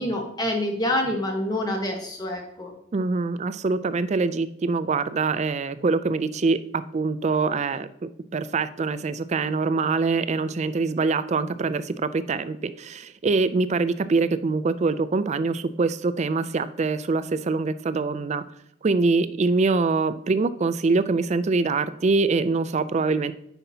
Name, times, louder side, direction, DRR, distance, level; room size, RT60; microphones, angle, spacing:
voice 1, 0.0-2.7, left 1 dB, 20° left, 2 dB, 1.3 m, -27 dB
voice 2, 2.9-6.6 6.9-7.9 8.3-18.4 18.8-23.3, right 4 dB, 35° right, 13 dB, 0.3 m, -24 dB
9.0 x 5.7 x 2.8 m, 0.76 s
head